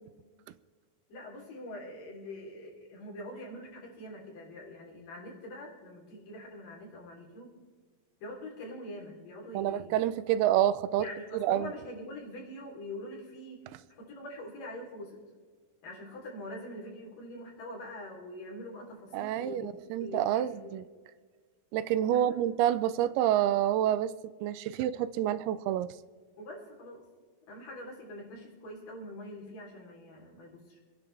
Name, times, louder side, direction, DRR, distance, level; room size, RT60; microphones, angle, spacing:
voice 1, 1.1-7.5 8.2-10.1 11.0-13.6 13.9-15.2 15.8-19.7 20.0-20.8 22.1-22.4 26.4-27.0 27.5-30.8, left 1 dB, 60° left, -3 dB, 4.9 m, -44 dB
voice 2, 9.5-11.1 11.3-11.7 19.1-20.8 21.7-24.1 24.4-25.9, right 11 dB, 85° right, 14 dB, 2.6 m, -28 dB
25.5 x 10.5 x 3.3 m, 1.5 s
omnidirectional pair, 4.4 m